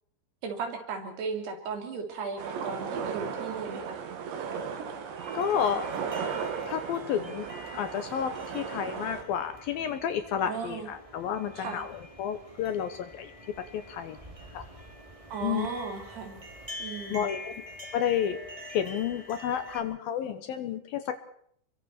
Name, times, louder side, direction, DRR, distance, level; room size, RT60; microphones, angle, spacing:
voice 1, 0.4-4.0 10.4-10.9 11.5-11.9 15.3-16.4 16.8-17.3, right 5 dB, 70° right, 4 dB, 4.9 m, -36 dB
sound 1, 2.4-9.2, right 6 dB, 85° right, 4.4 m, -36 dB
sound 2, 5.2-19.8, left 1 dB, 10° right, 2.2 m, -46 dB
voice 2, 5.3-5.9 6.7-7.5 7.7-13.3 13.7-14.2 14.5-14.6 15.4-15.7 17.1-17.5 17.9-18.4 18.7-21.2, left 8 dB, 70° left, 10 dB, 2.6 m, -31 dB
29.5 x 23.5 x 4.5 m, 0.65 s
omnidirectional pair, 5.0 m